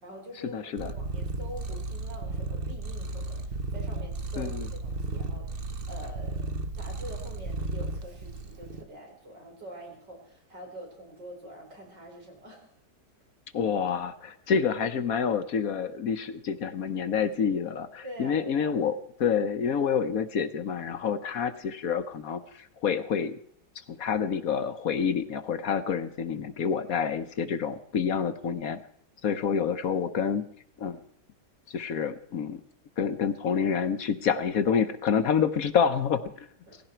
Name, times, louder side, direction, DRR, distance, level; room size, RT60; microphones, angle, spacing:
voice 1, 0.0-12.7 18.0-18.8 36.7-36.8, right 1 dB, 90° right, 0 dB, 5.2 m, -45 dB
voice 2, 0.5-0.9 4.4-4.7 13.5-23.4 23.9-28.8 29.2-30.5 30.8-31.0 31.7-32.6 33.0-36.5, left 7 dB, 60° left, 11 dB, 1.2 m, -28 dB
Purr, 0.8-8.8, right 3 dB, 40° right, 1.0 m, -34 dB
18.0 x 16.0 x 4.5 m, 0.66 s
omnidirectional pair, 1.8 m